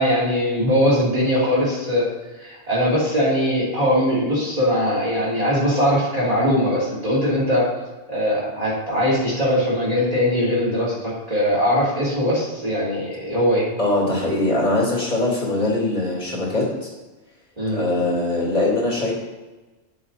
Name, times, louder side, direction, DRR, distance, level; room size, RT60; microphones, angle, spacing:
voice 1, 0.0-2.1 2.4-7.7 8.1-13.7 17.6-17.8, equal, 35° right, -7 dB, 3.0 m, -21 dB
voice 2, 13.8-16.9 17.7-19.1, left 2 dB, 45° left, -5 dB, 3.0 m, -22 dB
10.5 x 7.2 x 4.1 m, 1.2 s
omnidirectional pair, 1.2 m